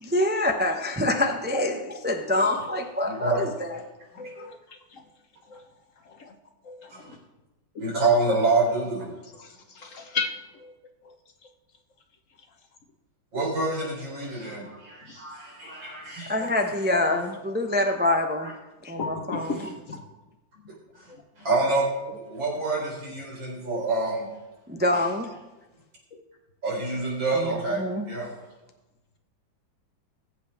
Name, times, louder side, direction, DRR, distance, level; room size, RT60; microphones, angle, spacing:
voice 1, 0.0-3.8 16.3-18.5 18.8-19.7 24.7-25.3 27.3-28.1, left 1 dB, 15° right, 3 dB, 0.3 m, -26 dB
voice 2, 3.0-3.4 6.9-7.0 7.8-9.1 13.3-16.3 17.1-17.2 18.4-18.5 21.4-24.3 26.6-28.3, right 3 dB, 85° right, -2 dB, 4.6 m, -27 dB
voice 3, 4.1-4.6 4.9-5.0 5.5-5.6 6.1-6.3 6.6-7.2 7.7-7.8 9.4-10.3 10.6-10.7 19.0-19.6 19.9-20.0, left 4 dB, 45° left, 4 dB, 1.5 m, -34 dB
20.0 x 7.9 x 3.5 m, 1.0 s
omnidirectional pair, 2.0 m